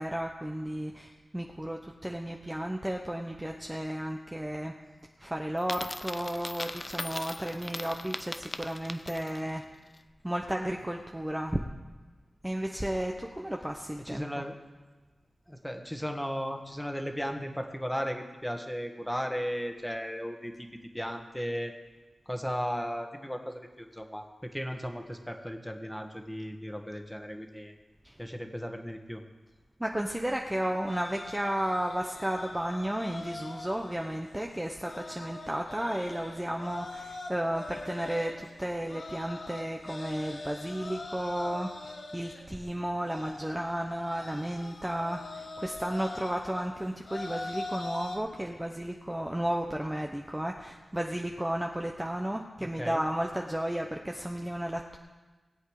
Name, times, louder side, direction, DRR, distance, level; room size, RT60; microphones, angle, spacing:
voice 1, 0.0-4.7 5.2-9.6 10.2-11.6 12.4-14.4 28.0-28.1 29.8-55.0, right 1 dB, 15° right, 1 dB, 1.0 m, -33 dB
Coin (dropping), 5.6-9.5, left 2 dB, 30° left, 0.6 m, -39 dB
voice 2, 14.0-14.5 15.5-20.7 20.9-21.7 22.3-27.7 28.2-29.2 52.8-53.0, equal, 5° left, 4 dB, 1.6 m, -35 dB
sound 1, 30.5-48.2, left 2 dB, 65° left, 3.3 m, -43 dB
20.0 x 8.3 x 4.9 m, 1.2 s
cardioid pair, 65°, 0 cm